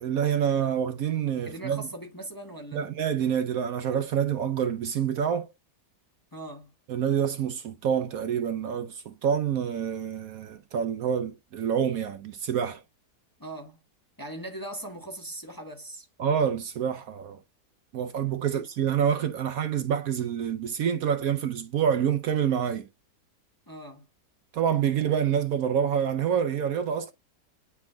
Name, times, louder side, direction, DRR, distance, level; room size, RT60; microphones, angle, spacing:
voice 1, 0.0-1.8 2.7-5.5 6.9-12.8 16.2-17.4 17.9-22.9 24.5-27.1, right 8 dB, 65° right, 1.0 m, -27 dB
voice 2, 1.4-2.9 6.3-6.7 13.4-13.8 14.2-16.1 18.5-18.7 23.7-24.0, right 1 dB, 15° left, 1.0 m, -40 dB
9.5 x 4.5 x 2.2 m
omnidirectional pair, 1.8 m